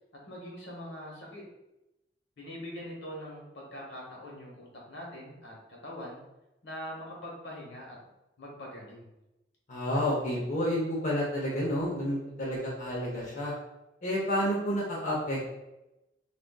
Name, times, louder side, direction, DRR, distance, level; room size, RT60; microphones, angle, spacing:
voice 1, 0.3-1.4 2.4-5.5 5.8-6.2 6.6-7.9 8.4-9.1, equal, 75° left, -2 dB, 0.9 m, -42 dB
voice 2, 9.7-13.5 14.0-15.4, equal, 45° left, -5 dB, 0.7 m, -30 dB
3.5 x 2.4 x 2.2 m, 0.94 s
head